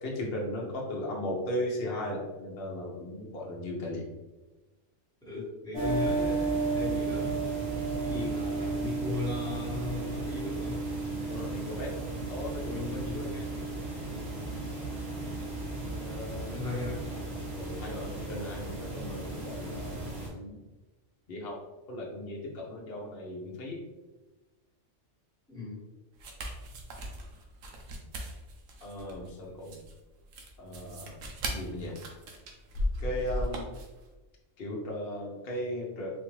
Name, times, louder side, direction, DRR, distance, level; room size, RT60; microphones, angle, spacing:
voice 1, 0.0-4.1 11.3-12.0 12.3-13.2 16.0-16.9 17.5-20.6 21.3-21.6 21.9-23.8 28.8-29.8 30.6-31.1 31.4-32.2 33.0-33.7 34.6-36.1, left 1 dB, 50° left, -3 dB, 0.9 m, -37 dB
voice 2, 5.2-7.4 8.0-10.8 12.7-13.8 14.1-14.4 16.4-17.0 25.5-25.8 29.4-29.5, left 3 dB, 5° left, -7 dB, 1.2 m, -37 dB
sound 1, 5.7-20.3, right 3 dB, 55° right, 1.4 m, -34 dB
sound 2, 26.2-34.0, equal, 90° right, 1.1 m, -37 dB
4.2 x 2.5 x 3.1 m, 1.1 s
omnidirectional pair, 1.3 m